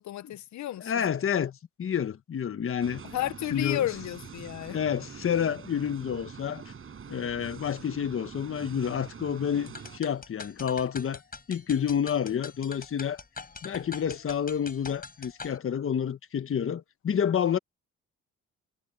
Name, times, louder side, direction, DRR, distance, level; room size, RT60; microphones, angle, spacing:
voice 1, 0.0-1.0 3.0-4.8, left 13 dB, 65° left, 0.9 m, -32 dB
voice 2, 0.8-3.0 3.5-3.9 4.7-6.6 7.1-11.2 11.5-13.2 13.6-17.6, left 8 dB, 45° left, 1.3 m, -29 dB
sound 1, 2.8-10.0, right 6 dB, 45° right, 8.0 m, -45 dB
sound 2, 9.7-15.6, left 4 dB, 30° left, 5.0 m, -43 dB
cardioid pair, 90°, 30 cm